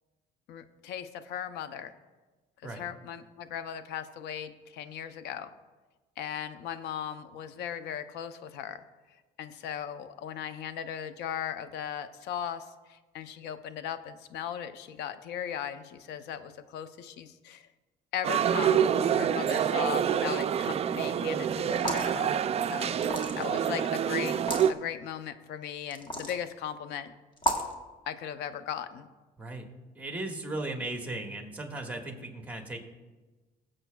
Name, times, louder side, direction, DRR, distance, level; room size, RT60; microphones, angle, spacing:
voice 1, 0.5-1.9 2.6-5.5 6.2-8.8 9.4-17.7 18.1-22.4 22.7-24.4 24.7-27.1 28.1-29.1, left 9 dB, 85° left, 11 dB, 0.7 m, -38 dB
sound 1, 18.2-24.7, right 8 dB, 40° right, 0.4 m, -27 dB
sound 2, 21.7-22.1 23.0-23.6 24.3-24.7 25.9-26.4 27.4-27.7, right 1 dB, 30° left, 1.4 m, -31 dB
voice 2, 29.4-29.7 30.0-32.8, right 2 dB, 10° right, 2 dB, 1.6 m, -37 dB
19.5 x 7.7 x 2.3 m, 1.2 s
cardioid pair, 110°, 17 cm